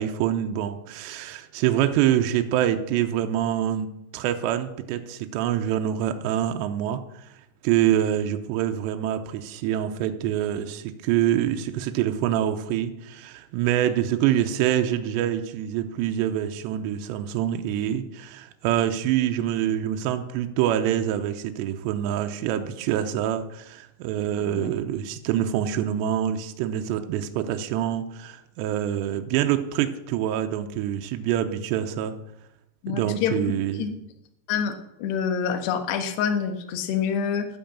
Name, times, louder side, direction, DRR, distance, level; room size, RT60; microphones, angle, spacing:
voice 1, 0.0-3.9 4.1-7.3 7.6-32.1 32.9-33.9, right 11 dB, 80° right, 6 dB, 2.8 m, -25 dB
voice 2, 24.4-24.7 32.8-33.5 33.8-33.9 34.5-34.7 35.0-37.5, left 7 dB, 70° left, 8 dB, 3.2 m, -26 dB
12.0 x 9.2 x 7.4 m, 0.85 s
omnidirectional pair, 5.3 m